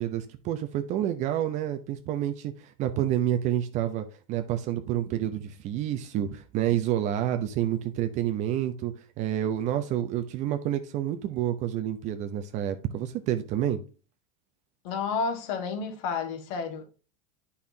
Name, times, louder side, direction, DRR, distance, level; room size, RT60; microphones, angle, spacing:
voice 1, 0.0-13.8, right 11 dB, 40° right, 0.7 m, -29 dB
voice 2, 14.8-16.8, left 5 dB, 60° left, 1.7 m, -31 dB
8.5 x 5.6 x 2.8 m
supercardioid pair, 145°, 19 cm